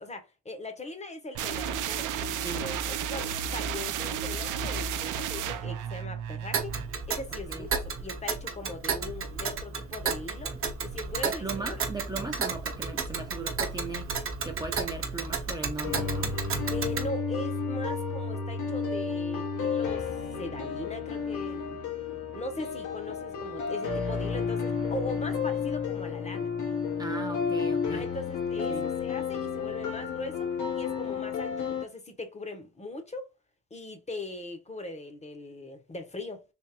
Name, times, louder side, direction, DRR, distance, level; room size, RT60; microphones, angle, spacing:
voice 1, 0.0-6.7 7.1-11.7 16.7-20.1 20.4-21.7 22.3-26.5 27.9-33.3 33.7-36.4, left 2 dB, 20° left, 0.8 m, -40 dB
sound 1, 1.3-7.0, right 7 dB, 80° right, 0.5 m, -32 dB
Tick, 6.5-17.1, right 5 dB, 45° right, 0.9 m, -33 dB
voice 2, 11.2-16.4 27.0-28.1 28.7-28.9, right 3 dB, 15° right, 0.6 m, -38 dB
sound 2, 15.8-31.8, left 5 dB, 80° left, 1.1 m, -31 dB
3.4 x 3.0 x 2.8 m
cardioid pair, 90°, 30 cm